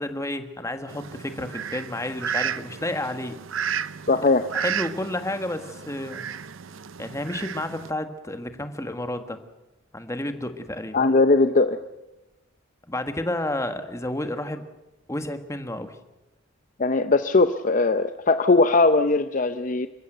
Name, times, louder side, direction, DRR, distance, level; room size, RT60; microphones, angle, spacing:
voice 1, 0.0-3.4 4.5-6.2 7.0-9.4 9.9-11.1 12.9-14.6 15.1-16.0, left 1 dB, 15° left, 8 dB, 1.5 m, -31 dB
Fowl, 0.9-7.9, right 8 dB, 85° right, 0.7 m, -33 dB
voice 2, 4.1-4.5 10.9-11.8 16.8-19.9, left 3 dB, 40° left, 10 dB, 0.7 m, -20 dB
28.0 x 15.0 x 8.0 m, 1.0 s
head